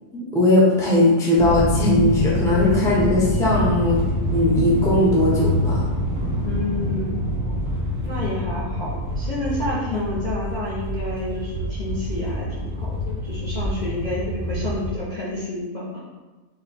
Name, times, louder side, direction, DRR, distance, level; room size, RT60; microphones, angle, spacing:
voice 1, 0.1-4.0 4.3-5.8, left 2 dB, 5° left, -6 dB, 0.7 m, -19 dB
sound 1, 1.4-14.9, equal, 85° right, 1.7 m, -26 dB
voice 2, 6.4-7.2 8.0-16.1, left 1 dB, 35° left, -8 dB, 0.7 m, -29 dB
5.0 x 2.3 x 4.2 m, 1.2 s
omnidirectional pair, 1.8 m